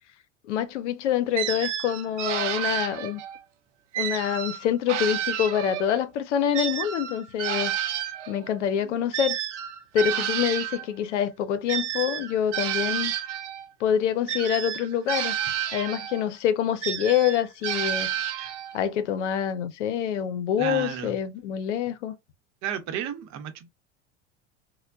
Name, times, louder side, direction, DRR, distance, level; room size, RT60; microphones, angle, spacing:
voice 1, 0.4-3.2 4.0-7.7 8.3-9.4 9.9-13.1 13.8-15.3 15.7-18.1 18.7-22.2, left 9 dB, 85° left, 0.6 m, -26 dB
sound 1, 1.4-3.4 3.9-6.0 6.5-10.9 11.7-13.7 14.3-16.3 16.8-18.8, right 10 dB, 85° right, 0.7 m, -30 dB
voice 2, 20.6-21.2 22.6-23.7, right 9 dB, 50° right, 0.8 m, -32 dB
4.3 x 2.2 x 2.5 m
hypercardioid pair, 90°, 35 cm